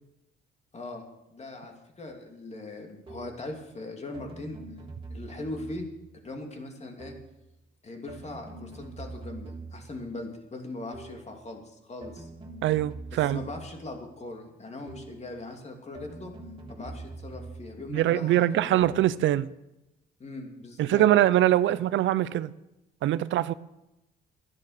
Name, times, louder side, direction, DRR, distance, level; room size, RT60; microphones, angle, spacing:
voice 1, 1.3-4.6 5.1-5.9 6.2-7.1 7.8-12.3 13.1-16.3 16.7-18.9 20.2-21.0, left 2 dB, 35° left, 2.8 m, -40 dB
sound 1, 3.1-3.5 4.1-6.1 7.0-7.4 8.1-10.0 10.9-11.3 12.0-13.9 14.9-15.3 15.9-17.9 18.8-19.2, right 3 dB, 25° right, 3.2 m, -44 dB
voice 2, 12.6-13.4 17.9-19.5 20.8-22.5 23.0-23.5, right 13 dB, 75° right, 0.5 m, -23 dB
12.0 x 10.5 x 6.6 m
cardioid pair, 90°, 20 cm